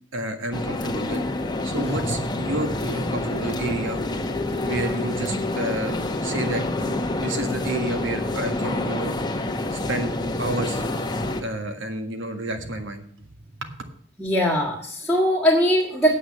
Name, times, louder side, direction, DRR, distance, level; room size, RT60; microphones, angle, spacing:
voice 1, 0.1-1.3 1.6-4.0 4.6-6.0 6.2-9.1 9.7-10.1 10.4-10.8 11.4-13.3 13.6-13.7, right 1 dB, 90° right, 6 dB, 1.7 m, -29 dB
sound 1, 0.5-11.4, left 2 dB, 20° left, 1.0 m, -27 dB
voice 2, 14.2-16.1, equal, ahead, -6 dB, 1.4 m, -21 dB
8.7 x 7.9 x 7.5 m, 0.62 s
head